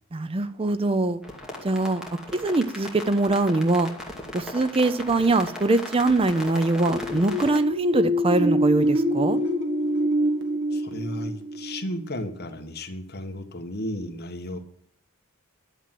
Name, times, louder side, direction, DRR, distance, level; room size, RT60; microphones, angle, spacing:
voice 1, 0.1-1.2 1.6-2.0 2.3-3.9 4.3-9.4, right 2 dB, 25° right, 13 dB, 0.5 m, -23 dB
sound 1, 1.2-7.6, left 1 dB, 5° right, 2.3 m, -38 dB
sound 2, 6.6-12.3, equal, 60° right, 1.8 m, -25 dB
voice 2, 10.7-14.6, left 1 dB, 50° left, 5 dB, 1.5 m, -34 dB
11.5 x 7.5 x 7.6 m, 0.66 s
head